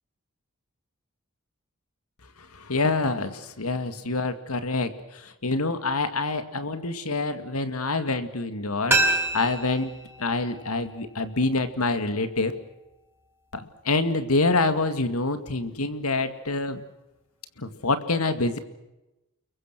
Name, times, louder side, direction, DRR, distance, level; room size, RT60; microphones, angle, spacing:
voice 1, 2.4-12.5 13.5-16.8 17.6-18.6, left 3 dB, 90° left, 9 dB, 2.1 m, -26 dB
sound 1, 8.9-11.7 12.0-12.1, right 2 dB, 10° right, 5.2 m, -28 dB
30.0 x 23.0 x 6.1 m, 0.96 s
head